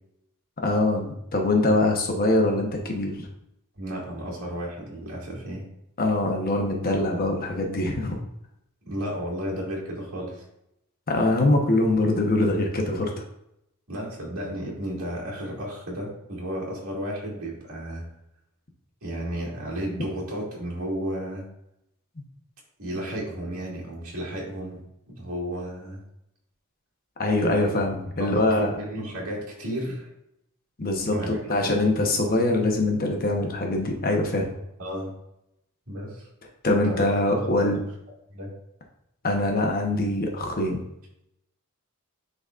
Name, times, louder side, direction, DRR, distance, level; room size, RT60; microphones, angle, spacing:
voice 1, 0.6-3.3 6.0-8.2 11.1-13.2 23.0-23.1 27.2-28.7 30.8-34.5 36.6-37.8 39.2-40.8, left 2 dB, 40° left, 2 dB, 1.0 m, -23 dB
voice 2, 3.8-5.6 8.9-10.4 13.9-18.0 19.0-21.4 22.8-24.8 25.1-26.0 28.2-30.1 31.1-31.8 34.8-35.1 35.9-36.3 36.6-37.8 38.3-38.5, equal, 65° right, -5 dB, 2.4 m, -33 dB
10.5 x 4.0 x 2.5 m, 0.82 s
head